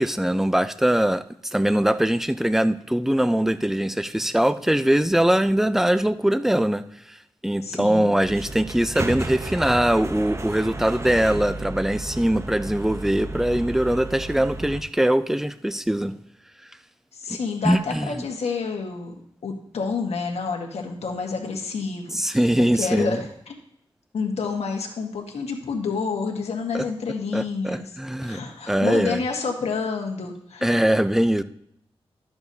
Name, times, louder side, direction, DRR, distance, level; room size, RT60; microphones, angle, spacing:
voice 1, 0.0-6.8 7.4-16.1 17.6-18.2 22.1-23.2 26.7-26.8 27.3-28.4 28.7-29.2 30.6-31.4, right 1 dB, 5° right, 12 dB, 0.5 m, -22 dB
voice 2, 7.6-8.1 17.1-19.1 19.4-23.5 24.1-30.8, left 5 dB, 80° left, 2 dB, 1.5 m, -29 dB
sound 1, 8.2-14.8, right 2 dB, 25° right, 0.8 m, -33 dB
12.5 x 6.9 x 2.8 m, 0.72 s
cardioid pair, 65°, 11 cm